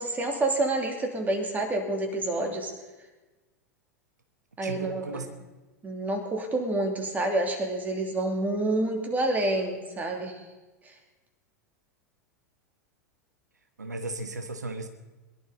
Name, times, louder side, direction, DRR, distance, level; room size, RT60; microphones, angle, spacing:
voice 1, 0.0-2.7 4.6-5.3 5.8-10.4 10.8-10.9, right 2 dB, 20° right, 3 dB, 2.9 m, -28 dB
voice 2, 4.6-5.3 13.8-14.9, right 2 dB, 85° right, 7 dB, 1.1 m, -35 dB
22.0 x 11.5 x 4.1 m, 1.2 s
figure-of-eight pair, 90°, 9 cm